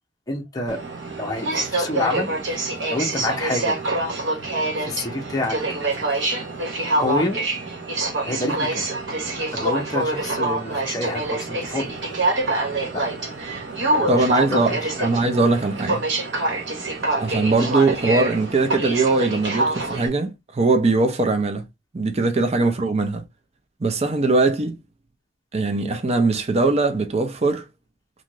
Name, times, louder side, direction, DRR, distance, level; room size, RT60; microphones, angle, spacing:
voice 1, 0.3-0.8 1.1-3.8 4.8-5.6 7.0-7.4 8.2-8.8 9.5-11.9 12.9-13.0 14.0-15.1 22.6-22.7, left 2 dB, 20° left, 0.6 m, -28 dB
Aircraft, 0.7-20.1, right 2 dB, 65° right, 0.9 m, -26 dB
voice 2, 14.1-14.7 15.0-16.0 17.2-21.6 21.9-23.2 23.8-24.8 25.5-27.6, right 3 dB, 35° right, 0.5 m, -21 dB
2.6 x 2.4 x 3.0 m
head